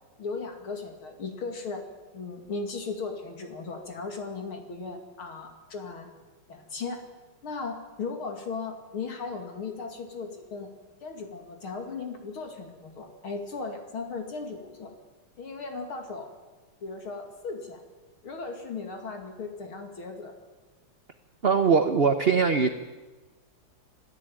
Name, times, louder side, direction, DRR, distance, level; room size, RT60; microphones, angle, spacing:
voice 1, 0.2-1.8 2.1-6.1 6.5-7.0 7.4-10.7 11.0-14.9 15.4-16.3 16.8-17.8 18.2-20.3, left 4 dB, 70° left, 4 dB, 3.3 m, -37 dB
voice 2, 21.4-22.7, right 5 dB, 40° right, 8 dB, 0.9 m, -21 dB
27.0 x 16.5 x 9.0 m, 1.3 s
omnidirectional pair, 2.4 m